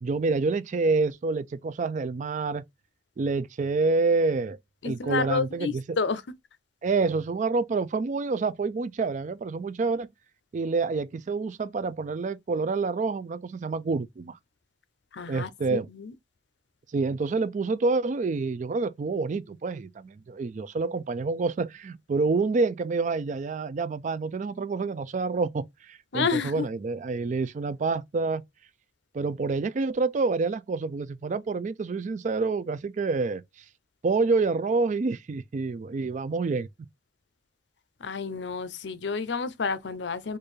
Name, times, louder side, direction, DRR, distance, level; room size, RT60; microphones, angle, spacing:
voice 1, 0.0-2.6 3.2-4.6 4.8-5.8 6.8-10.1 10.5-14.4 15.3-15.9 16.9-28.4 29.1-33.4 34.0-36.7, right 4 dB, 40° right, 0.3 m, -27 dB
voice 2, 4.8-6.2 15.1-16.1 26.1-26.7 38.0-40.4, left 5 dB, 65° left, 0.6 m, -30 dB
4.4 x 2.5 x 3.1 m
head